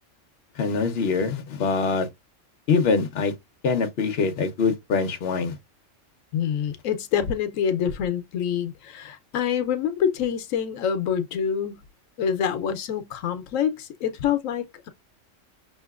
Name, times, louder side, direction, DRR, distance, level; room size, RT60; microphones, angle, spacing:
voice 1, 0.6-2.1 2.7-3.3 3.6-5.5, left 4 dB, 55° left, 1.0 m, -24 dB
voice 2, 6.3-11.8 12.2-14.9, left 8 dB, 90° left, 1.0 m, -26 dB
5.6 x 2.9 x 2.3 m
omnidirectional pair, 1.3 m